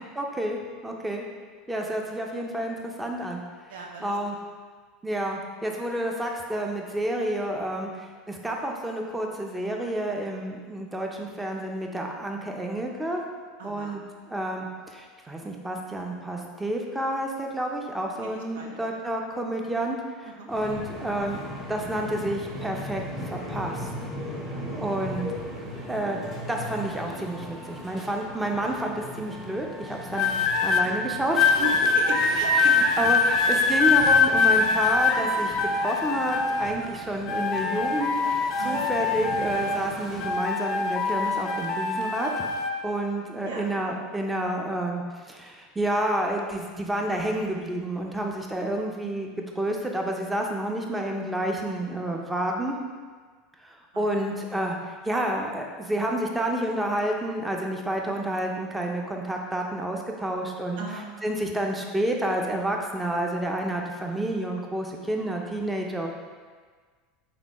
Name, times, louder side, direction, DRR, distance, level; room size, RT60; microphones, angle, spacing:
voice 1, 0.2-1.3 1.7-3.4 4.0-4.4 5.0-13.2 13.6-14.0 14.3-21.4 21.7-23.0 23.3-23.9 24.7-25.3 25.9-26.2 26.5-30.4 30.6-31.5 32.5-35.5 35.8-42.3 42.8-49.3 49.6-52.8 53.6-60.8 61.2-66.1, right 1 dB, 10° right, 1 dB, 0.6 m, -29 dB
voice 2, 3.7-4.1 13.6-14.0 18.2-18.9 20.3-20.5 24.7-24.8 30.7-30.8 31.6-32.7 38.6-38.9 43.4-43.7 53.9-54.2 60.8-61.1, right 3 dB, 75° right, 1 dB, 0.6 m, -36 dB
sound 1, 20.5-40.3, equal, 30° right, 1.4 m, -38 dB
sound 2, 30.1-30.8 31.4-36.9 37.3-39.9 40.2-42.7 43.5-43.8, left 4 dB, 50° left, 0.4 m, -23 dB
4.0 x 3.4 x 3.1 m, 1.5 s
hypercardioid pair, 90°, 0 cm